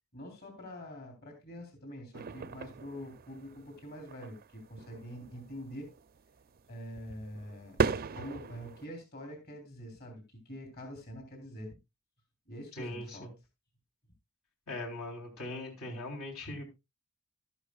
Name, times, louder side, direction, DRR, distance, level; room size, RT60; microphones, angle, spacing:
voice 1, 0.1-5.9 6.7-7.8 8.1-11.7 12.5-13.3, equal, 45° left, 3 dB, 3.4 m, -45 dB
sound 1, 2.1-8.9, right 4 dB, 45° right, 0.5 m, -38 dB
voice 2, 12.8-13.3 14.7-16.7, left 1 dB, 75° left, 0 dB, 3.6 m, -40 dB
12.5 x 11.5 x 2.3 m, 0.24 s
head